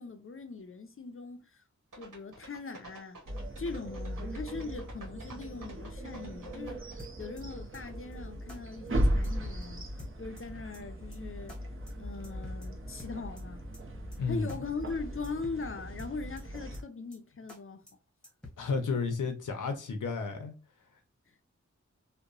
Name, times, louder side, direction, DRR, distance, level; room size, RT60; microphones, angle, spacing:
voice 1, 0.0-1.6 1.9-3.2 3.6-9.9 10.2-11.6 12.0-13.7 14.3-17.9 21.3-21.4, left 4 dB, 45° left, 0.5 m, -40 dB
sound 1, 1.9-7.5 7.8-7.9, right 2 dB, 85° right, 1.1 m, -50 dB
sound 2, 3.3-16.8, equal, 45° right, 0.7 m, -37 dB
sound 3, 7.0-7.4 7.7-7.8 8.1-8.2 8.5-8.6 8.9-9.0 9.2-9.6 10.0-10.4 10.7-10.8 11.1-11.2 11.5-11.6 11.9-12.0 12.2-12.7 13.0-13.4 13.7-13.8 14.1-14.2 14.5-14.6 14.9-15.0 15.2-15.6 16.0-16.4 16.7-16.8 17.1-17.2 17.5-17.6 17.9-18.0 18.2-18.6, left 2 dB, 5° left, 1.0 m, -49 dB
voice 2, 14.2-14.5 18.6-20.5, left 4 dB, 85° left, 0.6 m, -32 dB
2.9 x 2.1 x 2.5 m
wide cardioid pair, 50°, 30 cm